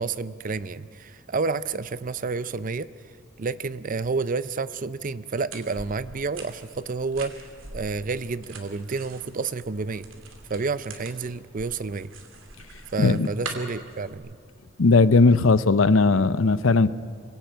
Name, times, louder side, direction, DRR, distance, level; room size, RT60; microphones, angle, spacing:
voice 1, 0.0-2.9 3.4-7.4 7.7-10.1 10.5-12.1 12.9-14.4, right 4 dB, 45° right, 15 dB, 0.6 m, -30 dB
sound 1, 5.5-14.1, right 3 dB, 75° right, 2.8 m, -43 dB
voice 2, 14.8-16.9, left 3 dB, 80° left, 15 dB, 0.7 m, -18 dB
27.0 x 23.0 x 4.6 m, 2.3 s
head